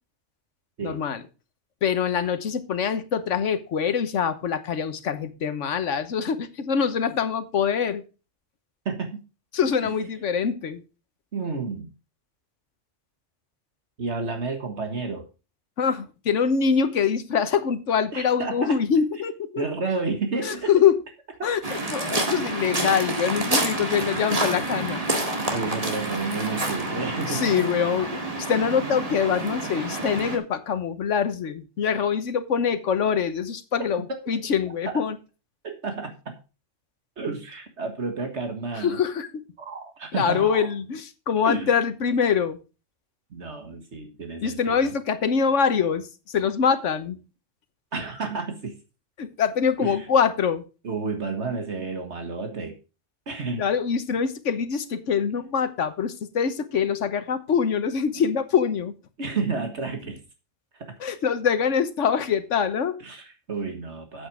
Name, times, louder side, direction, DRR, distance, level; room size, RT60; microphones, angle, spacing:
voice 1, 0.8-1.2 1.8-8.0 9.5-10.8 15.8-19.7 20.4-21.0 21.4-25.0 27.3-28.2 28.5-35.2 38.7-39.4 40.1-42.6 44.4-47.2 49.2-50.6 53.5-58.9 61.0-63.0, left 7 dB, 80° left, 11 dB, 1.4 m, -24 dB
voice 2, 8.9-9.2 9.8-9.9 11.3-11.9 14.0-15.2 18.1-18.8 19.6-20.7 21.4-21.5 25.5-27.7 34.1-34.2 34.9-35.0 35.6-36.4 37.2-39.0 39.6-40.7 41.4-41.7 43.3-44.9 47.9-48.8 49.8-50.1 50.8-52.8 53.3-53.7 59.2-60.2 60.7-60.9 63.0-64.3, right 4 dB, 65° right, 5 dB, 1.8 m, -31 dB
Waves surf, 21.6-30.4, right 2 dB, 30° right, 1.9 m, -28 dB
8.3 x 8.2 x 4.7 m, 0.32 s
omnidirectional pair, 1.2 m